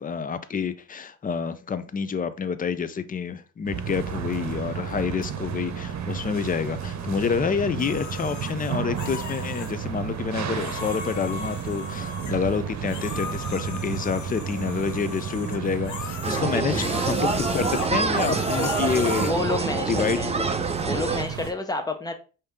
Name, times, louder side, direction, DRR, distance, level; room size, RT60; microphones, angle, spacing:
voice 1, 0.0-19.3 19.6-20.6, left 6 dB, 30° left, 0.5 m, -28 dB
sound 1, 3.6-21.5, right 7 dB, 65° right, 0.8 m, -32 dB
sound 2, 7.8-9.7 10.5-12.5 12.9-19.3, left 7 dB, 75° left, 0.7 m, -38 dB
sound 3, 16.2-21.2, right 4 dB, 20° right, 0.6 m, -26 dB
voice 2, 16.5-17.0 19.2-20.3 20.8-22.1, left 2 dB, 10° left, 0.9 m, -30 dB
5.1 x 2.8 x 3.5 m
cardioid pair, 90°, 30 cm